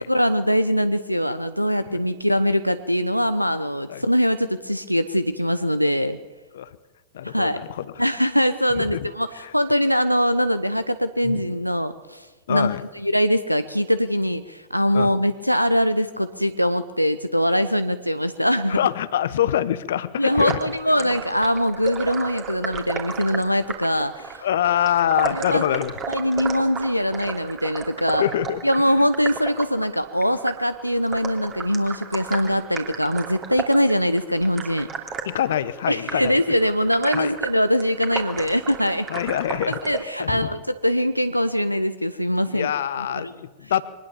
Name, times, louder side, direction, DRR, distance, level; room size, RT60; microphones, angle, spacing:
voice 1, 0.0-6.2 7.2-7.6 8.0-18.8 20.2-24.4 25.1-25.6 26.1-28.3 28.6-34.9 35.9-39.1 39.7-42.7 43.0-43.3, equal, 90° left, 10 dB, 0.7 m, -22 dB
voice 2, 7.1-7.8 8.8-9.0 9.4-9.5 11.2-11.4 12.5-12.8 14.9-15.1 18.7-20.6 24.4-25.9 28.2-28.6 35.2-36.4 37.1-37.4 39.1-39.8 40.2-40.5 42.5-43.8, left 11 dB, 60° left, 16 dB, 1.0 m, -24 dB
sound 1, 20.3-40.0, right 6 dB, 30° right, 2.9 m, -34 dB
23.0 x 19.5 x 7.0 m, 1.2 s
figure-of-eight pair, 90°, 0 cm